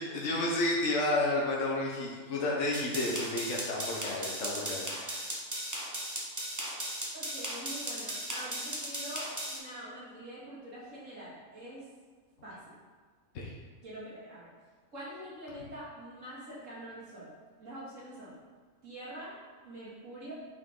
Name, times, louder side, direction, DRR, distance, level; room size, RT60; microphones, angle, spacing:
voice 1, 0.0-5.4 13.3-13.5, left 2 dB, 65° left, -3 dB, 1.4 m, -31 dB
sound 1, 2.7-9.6, right 1 dB, 15° right, 0.9 m, -37 dB
voice 2, 7.1-11.8 12.4-12.6 13.8-14.5 14.9-17.3 17.6-18.4 18.8-19.4 19.6-20.3, right 1 dB, 65° right, -8 dB, 2.7 m, -45 dB
8.7 x 4.7 x 3.7 m, 1.5 s
omnidirectional pair, 1.4 m